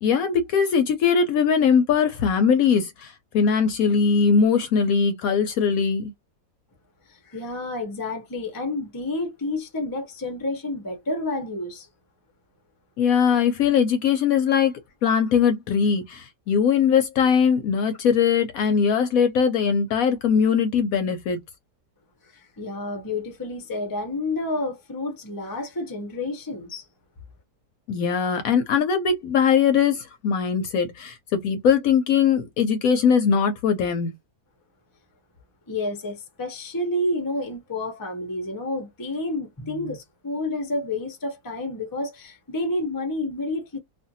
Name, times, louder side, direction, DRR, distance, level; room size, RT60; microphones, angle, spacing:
voice 1, 0.0-6.1 13.0-14.7 15.0-21.4 27.9-34.1, left 6 dB, 70° left, 0.9 m, -21 dB
voice 2, 7.1-11.9 22.2-26.9 35.7-43.8, left 2 dB, 25° left, 0.4 m, -30 dB
2.5 x 2.5 x 2.6 m
omnidirectional pair, 1.8 m